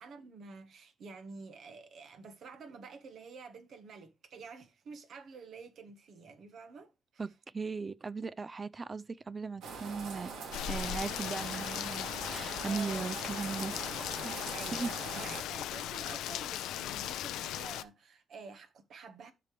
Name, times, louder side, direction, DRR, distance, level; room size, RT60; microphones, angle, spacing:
voice 1, 0.0-6.9 12.6-13.2 14.5-19.3, right 4 dB, 65° right, 1.5 m, -49 dB
voice 2, 7.2-10.3 10.7-13.7 14.2-14.3 14.7-14.9, right 4 dB, 30° right, 0.4 m, -38 dB
sound 1, 9.6-15.4, right 4 dB, 80° right, 2.8 m, -43 dB
Rain, 10.5-17.8, left 12 dB, 90° left, 0.5 m, -38 dB
12.5 x 5.1 x 3.3 m
cardioid pair, 90°, 0 cm